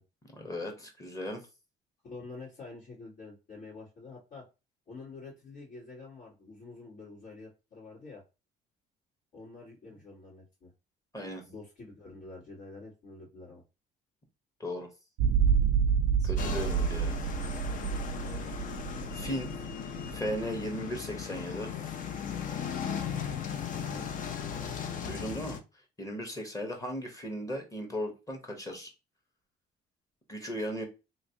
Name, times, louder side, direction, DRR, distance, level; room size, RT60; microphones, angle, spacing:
voice 1, 0.3-1.4 11.1-11.4 14.6-14.9 16.2-17.2 19.1-19.5 20.1-21.7 23.7-24.1 25.1-25.6 26.0-28.9 30.3-30.8, equal, 20° left, 3 dB, 1.0 m, -37 dB
voice 2, 2.0-4.4 4.9-8.2 9.3-10.7 11.5-13.6 16.2-16.4 18.2-18.6 23.7-24.1, left 3 dB, 65° left, -8 dB, 1.9 m, -47 dB
sound 1, 15.2-20.4, right 7 dB, 85° right, 0.4 m, -28 dB
sound 2, 16.4-25.6, left 8 dB, 50° left, 0.5 m, -37 dB
3.1 x 2.6 x 2.7 m, 0.28 s
cardioid pair, 110°, 17 cm